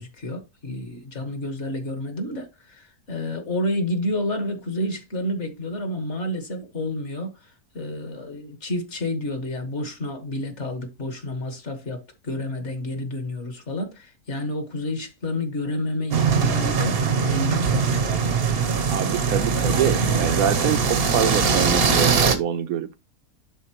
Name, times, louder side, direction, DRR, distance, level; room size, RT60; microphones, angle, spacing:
voice 1, 0.0-18.1, left 1 dB, 50° left, 1.7 m, -30 dB
sound 1, 16.1-22.4, right 5 dB, 45° right, 0.9 m, -21 dB
voice 2, 18.9-23.0, right 9 dB, 70° right, 1.0 m, -25 dB
11.5 x 4.0 x 3.0 m
omnidirectional pair, 1.7 m